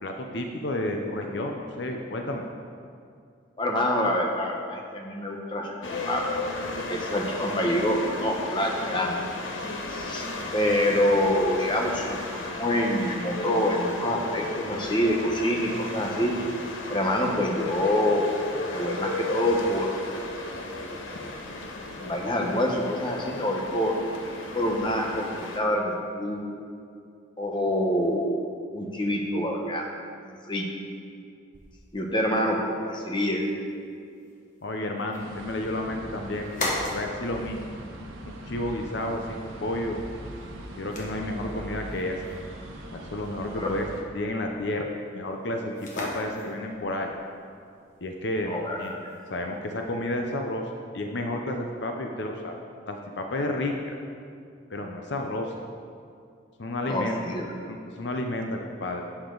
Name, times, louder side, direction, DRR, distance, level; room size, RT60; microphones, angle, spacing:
voice 1, 0.0-2.4 32.3-32.4 34.6-37.6 38.0-40.0 40.8-42.2 42.9-43.9 44.1-44.9 45.1-47.1 48.0-49.0 49.3-50.7 50.9-52.6 52.9-53.9 54.7-55.5 56.6-57.2 57.7-59.0, left 1 dB, 60° left, 3 dB, 0.7 m, -31 dB
voice 2, 3.6-5.7 6.1-6.4 6.9-9.2 9.9-10.3 10.5-16.3 16.9-18.3 18.7-20.0 22.0-23.9 24.5-26.4 27.4-28.4 28.7-29.9 30.3-30.7 31.9-33.4 43.5-43.7 48.4-49.1 56.8-57.4, left 1 dB, 25° left, 0 dB, 1.1 m, -26 dB
sound 1, 5.8-25.6, left 2 dB, 75° left, 1.0 m, -35 dB
sound 2, 31.5-50.0, left 1 dB, 40° left, 1.6 m, -41 dB
sound 3, 35.2-44.0, right 1 dB, 85° right, 1.3 m, -41 dB
11.5 x 8.8 x 3.9 m, 2.3 s
head